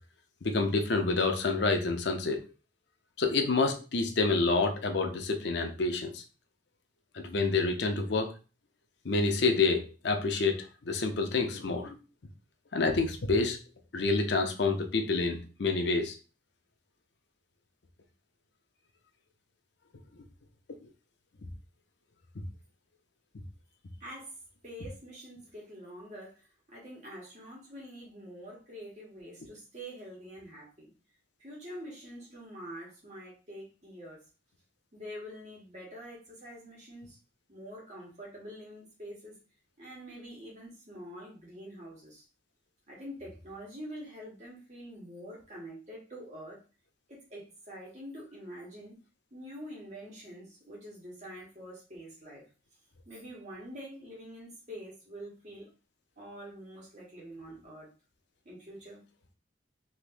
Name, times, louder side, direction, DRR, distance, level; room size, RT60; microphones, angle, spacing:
voice 1, 0.4-2.4 3.2-6.2 7.1-8.3 9.0-10.6 10.9-12.0 12.7-13.6 13.9-16.1, left 3 dB, 60° left, 5 dB, 0.6 m, -28 dB
voice 2, 24.0-24.4 24.6-30.9 31.4-34.2 34.9-37.2 37.5-39.4 39.8-42.2 42.9-46.6 47.1-49.0 49.3-52.4 53.0-55.7 56.2-57.9 58.4-59.0, equal, 40° right, -4 dB, 1.5 m, -46 dB
3.4 x 2.9 x 2.5 m, 0.32 s
head